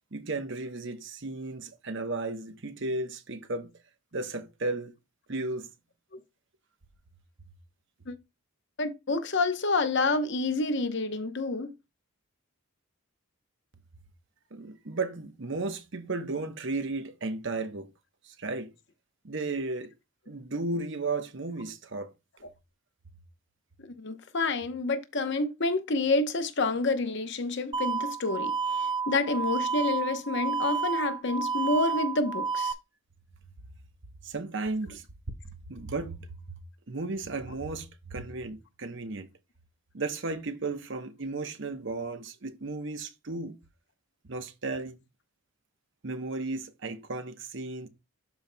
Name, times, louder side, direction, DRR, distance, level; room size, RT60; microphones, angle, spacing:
voice 1, 0.1-3.7 4.1-4.9 5.3-5.7 14.5-17.9 18.2-18.7 19.2-19.9 20.3-22.1 34.2-35.0 35.7-36.6 36.9-39.3 39.9-43.6 44.2-45.0 46.0-47.9, right 3 dB, 55° right, 0.9 m, -34 dB
voice 2, 8.8-11.7 23.9-32.7, left 3 dB, 55° left, 0.9 m, -28 dB
sound 1, 27.7-32.7, right 5 dB, 20° right, 0.3 m, -30 dB
12.5 x 4.4 x 2.2 m
head